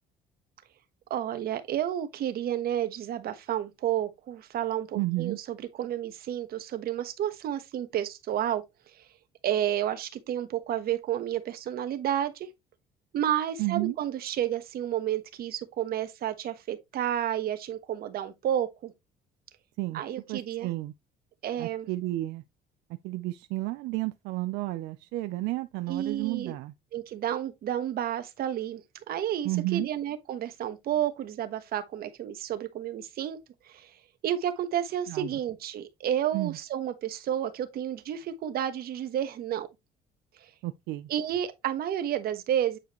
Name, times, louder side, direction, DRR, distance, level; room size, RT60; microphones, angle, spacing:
voice 1, 1.1-8.6 9.4-12.5 13.1-18.9 19.9-20.7 21.4-21.9 25.9-26.5 26.9-33.4 33.6-33.9 34.2-39.7 41.1-42.8, right 10 dB, 65° right, 1.3 m, -31 dB
voice 2, 5.0-5.4 13.6-13.9 19.8-20.0 20.3-20.9 21.6-22.4 23.0-26.7 29.4-29.9 35.1-35.3 36.3-36.5 40.6-41.1, right 19 dB, 90° right, 0.5 m, -31 dB
8.7 x 4.8 x 3.0 m
cardioid pair, 110°, 17 cm